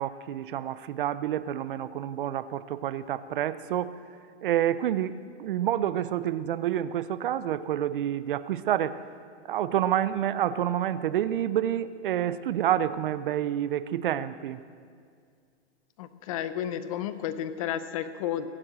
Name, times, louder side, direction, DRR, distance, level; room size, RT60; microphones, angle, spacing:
voice 1, 0.0-3.9 4.4-9.0 9.5-14.6, right 11 dB, 50° right, 15 dB, 0.5 m, -28 dB
voice 2, 16.0-18.5, left 10 dB, 30° left, 12 dB, 0.6 m, -32 dB
22.0 x 7.5 x 6.2 m, 2.1 s
hypercardioid pair, 160°, 36 cm